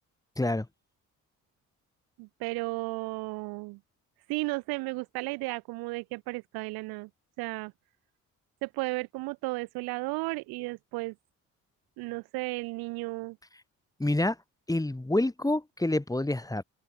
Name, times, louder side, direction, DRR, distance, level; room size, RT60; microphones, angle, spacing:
voice 1, 0.4-0.7 14.0-14.4 14.7-16.6, left 1 dB, 10° left, 2.0 m, -27 dB
voice 2, 2.2-3.8 4.3-7.1 7.4-7.7 8.6-11.1 12.0-13.4, right 24 dB, 90° right, 0.9 m, -34 dB
supercardioid pair, 65°, 36 cm